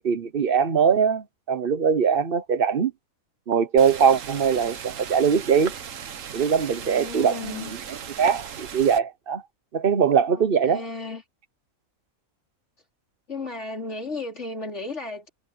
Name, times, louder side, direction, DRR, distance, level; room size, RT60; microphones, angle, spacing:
voice 1, 0.0-2.9 3.5-5.7 6.3-7.6 8.2-9.4 9.7-10.8, right 7 dB, 45° right, 1.2 m, -21 dB
sound 1, 3.8-9.0, right 8 dB, 65° right, 1.4 m, -37 dB
voice 2, 6.8-7.7 10.3-11.2 13.3-15.3, left 3 dB, 55° left, 4.2 m, -34 dB
omnidirectional pair, 1.5 m